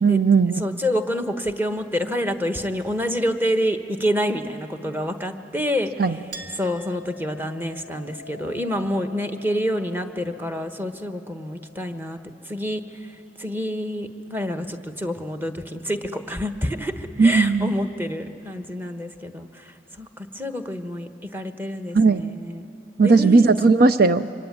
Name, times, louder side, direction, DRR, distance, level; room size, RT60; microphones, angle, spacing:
voice 1, 0.0-0.6 6.0-6.1 17.2-17.7 21.9-22.3 23.0-24.3, right 4 dB, 60° right, 11 dB, 0.6 m, -16 dB
voice 2, 0.6-5.9 6.6-12.2 12.4-22.6 23.0-23.4, equal, 10° right, 7 dB, 1.2 m, -27 dB
Chink clink, 6.3-13.4, left 1 dB, 85° right, 2.1 m, -46 dB
25.0 x 24.5 x 9.7 m, 2.7 s
head